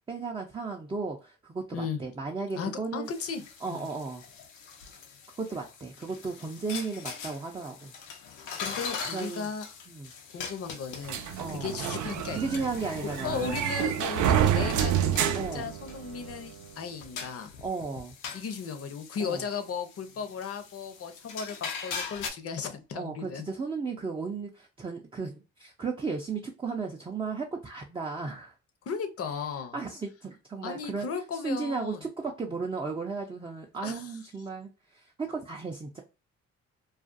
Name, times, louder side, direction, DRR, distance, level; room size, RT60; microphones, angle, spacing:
voice 1, 0.1-3.1 3.6-4.2 5.4-7.9 9.1-9.5 9.9-10.1 11.4-11.8 12.3-13.7 15.3-15.7 17.6-18.1 19.2-19.4 22.9-28.5 29.7-31.1 31.3-36.0, right 4 dB, 15° right, 0.4 m, -35 dB
voice 2, 2.5-3.9 8.6-9.7 10.3-12.6 13.0-17.5 18.3-23.5 28.9-29.8 30.6-32.0 33.8-34.1, left 6 dB, 50° left, 0.7 m, -36 dB
sound 1, 3.1-22.3, left 5 dB, 90° left, 0.7 m, -42 dB
sound 2, 11.1-16.3, right 9 dB, 75° right, 0.5 m, -28 dB
2.4 x 2.3 x 2.5 m
cardioid pair, 90°, 30 cm